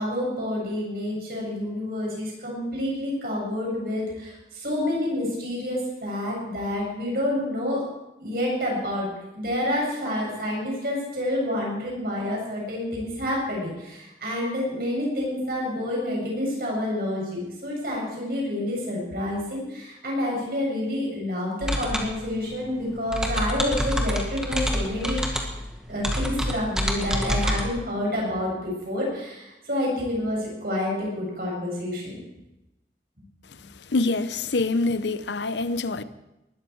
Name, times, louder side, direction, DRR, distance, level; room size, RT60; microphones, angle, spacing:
voice 1, 0.0-7.8 8.2-9.1 9.3-25.4 25.9-32.2, left 1 dB, 55° right, 7.5 m, -28 dB
sound 1, 21.6-27.6, equal, 5° right, 1.8 m, -27 dB
voice 2, 33.9-36.0, left 3 dB, 90° left, 0.8 m, -25 dB
20.0 x 13.5 x 4.7 m
head